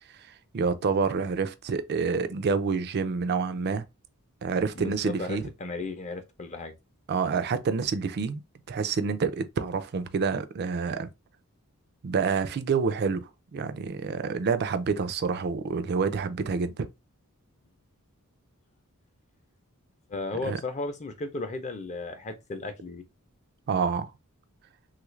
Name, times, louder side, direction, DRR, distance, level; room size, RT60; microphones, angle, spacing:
voice 1, 0.5-3.9 4.4-5.5 7.1-8.4 8.7-11.1 12.0-16.9 20.4-20.6 23.7-24.1, right 5 dB, 50° right, 0.4 m, -28 dB
voice 2, 4.8-6.7 20.1-23.1, left 3 dB, 30° left, 0.5 m, -35 dB
3.1 x 2.4 x 3.1 m
head